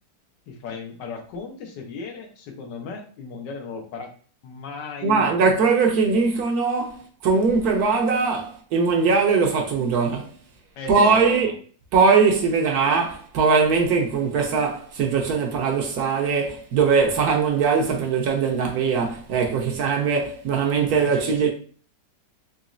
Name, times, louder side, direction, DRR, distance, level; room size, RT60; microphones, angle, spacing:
voice 1, 0.5-4.1 4.4-5.3 10.8-11.5 21.0-21.4, left 5 dB, 80° left, 1.4 m, -36 dB
voice 2, 5.0-10.4 10.9-11.5 11.9-21.5, right 5 dB, 70° right, 1.1 m, -21 dB
4.0 x 3.0 x 2.5 m
omnidirectional pair, 1.9 m